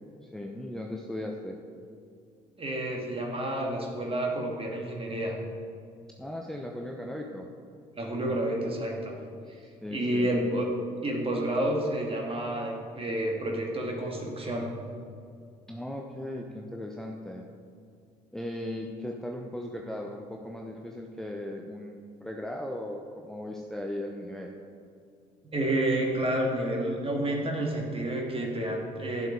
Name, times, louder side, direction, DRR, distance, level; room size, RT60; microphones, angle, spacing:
voice 1, 0.2-1.6 6.2-7.5 9.5-10.3 15.7-17.4 18.3-24.6, left 1 dB, ahead, 0 dB, 0.9 m, -37 dB
voice 2, 2.6-5.4 7.9-9.2 9.9-10.7 11.0-14.7 25.5-29.3, right 1 dB, 30° right, 0 dB, 2.3 m, -29 dB
11.0 x 7.7 x 4.7 m, 2.3 s
figure-of-eight pair, 50°, 20 cm